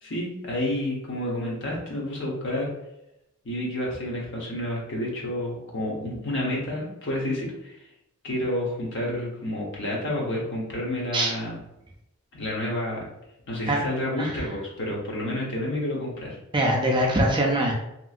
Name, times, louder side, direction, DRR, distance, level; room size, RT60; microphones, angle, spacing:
voice 1, 0.0-2.7 3.4-7.9 8.2-11.6 12.3-13.1 13.5-16.4, left 1 dB, 60° left, -3 dB, 0.9 m, -30 dB
voice 2, 16.5-17.7, right 1 dB, 20° right, 0 dB, 0.4 m, -23 dB
2.9 x 2.6 x 2.4 m, 0.84 s
head